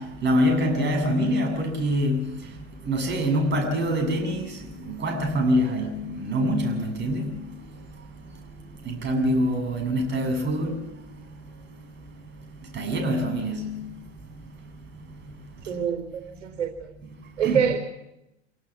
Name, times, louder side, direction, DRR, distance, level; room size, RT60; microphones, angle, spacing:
voice 1, 0.0-15.8 17.2-17.6, equal, 30° right, 7.1 m, -27 dB
voice 2, 15.7-16.9 17.4-17.8, right 8 dB, 85° right, 4.2 m, -26 dB
27.5 x 18.0 x 7.3 m
hypercardioid pair, 105°, 36 cm